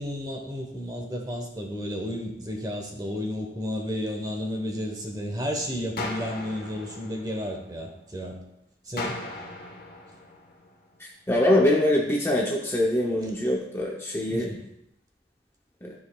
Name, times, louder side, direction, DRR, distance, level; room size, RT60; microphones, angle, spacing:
voice 1, 0.0-8.4 8.9-9.2 14.3-14.6, equal, 20° right, 2 dB, 1.0 m, -32 dB
sound 1, 6.0-8.0 9.0-11.0, left 2 dB, 50° left, 1.1 m, -38 dB
voice 2, 11.0-14.5 15.8-15.9, left 1 dB, 10° left, -2 dB, 0.6 m, -24 dB
13.0 x 4.9 x 2.3 m, 0.82 s
head